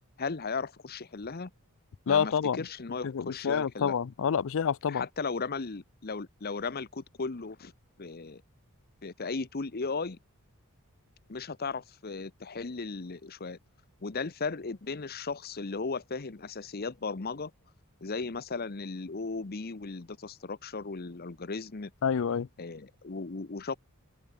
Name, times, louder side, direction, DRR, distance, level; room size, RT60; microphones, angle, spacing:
voice 1, 0.2-1.5 2.1-3.9 4.9-7.7 8.0-8.4 9.0-10.2 11.3-13.6 14.0-17.5 18.0-21.9 22.6-23.8, left 4 dB, 45° left, 0.9 m, -36 dB
voice 2, 2.1-2.6 3.0-5.0 22.0-22.5, left 7 dB, 65° left, 0.4 m, -28 dB
head